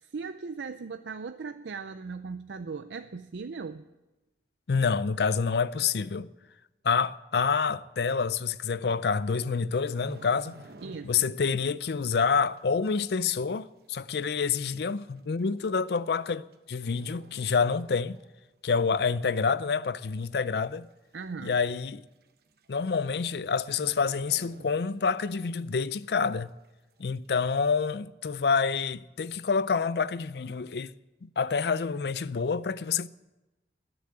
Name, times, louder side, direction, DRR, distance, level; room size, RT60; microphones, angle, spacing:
voice 1, 0.0-3.8 10.8-11.3 21.1-21.6, right 4 dB, 80° right, 0.5 m, -38 dB
voice 2, 4.7-6.3 6.8-10.6 11.0-18.2 18.6-20.9 21.4-22.0 22.7-26.5 27.0-30.9 31.4-33.1, left 5 dB, 65° left, 0.5 m, -27 dB
sound 1, 9.7-11.5 11.7-12.0 12.6-12.7 13.6-13.7 13.9-14.0 14.8-15.0 16.1-16.5 16.8-18.4 18.7-18.9 19.4-20.0 20.3-20.4 20.6-20.7 21.1-21.2 22.2-22.3 22.6-22.9 23.1-23.3 23.7-25.3 25.7-25.8, right 3 dB, 60° right, 1.0 m, -51 dB
20.5 x 7.0 x 8.8 m
head